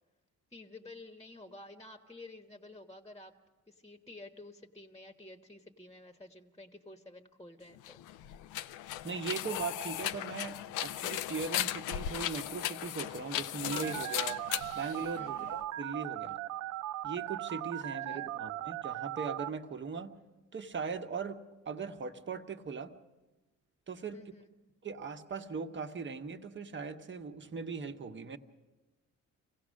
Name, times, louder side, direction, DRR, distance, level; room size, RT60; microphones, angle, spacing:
voice 1, 0.5-3.3 3.7-8.0 15.2-15.5 18.1-18.3 24.1-24.6, left 2 dB, 10° left, 5 dB, 1.2 m, -51 dB
sound 1, 7.8-15.6, left 12 dB, 90° left, 0.6 m, -37 dB
voice 2, 9.0-14.4 14.7-16.4 17.0-20.1 20.5-21.4 21.6-22.9 23.9-24.2 24.8-28.4, right 5 dB, 40° right, 6 dB, 1.3 m, -39 dB
Telephone, 13.7-19.5, right 14 dB, 80° right, 0.6 m, -38 dB
25.5 x 16.5 x 6.4 m, 1.1 s
cardioid pair, 90°, 30 cm